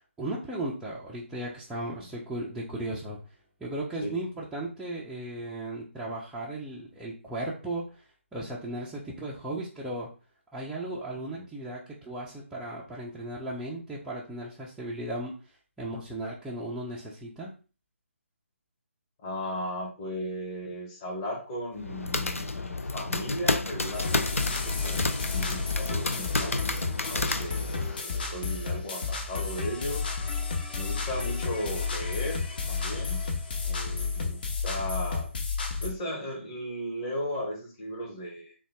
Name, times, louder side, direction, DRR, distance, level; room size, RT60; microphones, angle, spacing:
voice 1, 0.0-3.2 3.6-8.0 8.3-10.1 10.5-15.3 15.8-17.5, right 1 dB, 5° right, -8 dB, 0.3 m, -36 dB
voice 2, 19.2-26.7 27.0-27.7 28.0-30.1 30.7-32.4 32.7-33.3 33.6-35.3 35.8-38.5, equal, 25° left, -2 dB, 1.0 m, -36 dB
sound 1, 21.8-28.0, left 3 dB, 85° left, 0.3 m, -30 dB
sound 2, 23.9-35.9, left 4 dB, 45° left, 0.8 m, -31 dB
3.7 x 2.2 x 3.3 m, 0.35 s
figure-of-eight pair, 145°, 7 cm